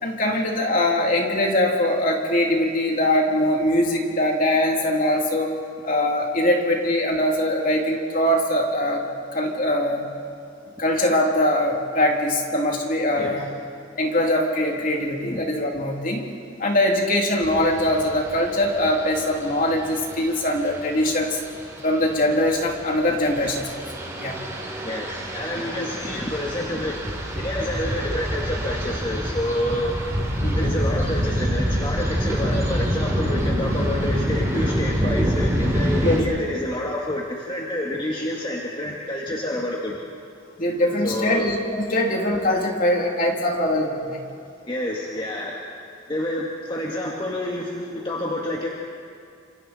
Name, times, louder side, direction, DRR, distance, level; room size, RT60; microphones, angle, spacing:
voice 1, 0.0-5.5 5.8-9.0 9.3-10.1 10.8-13.5 14.0-16.3 16.6-21.4 21.8-23.8 24.2-24.3 30.4-30.8 36.0-36.2 40.6-44.2, left 1 dB, 45° left, 0 dB, 3.1 m, -22 dB
sound 1, 17.4-36.2, equal, 15° right, 3.6 m, -27 dB
voice 2, 24.8-30.0 30.6-40.0 41.0-41.5 44.7-45.6 46.1-48.7, left 1 dB, 25° left, -3 dB, 1.9 m, -28 dB
28.5 x 26.5 x 4.4 m, 2.5 s
head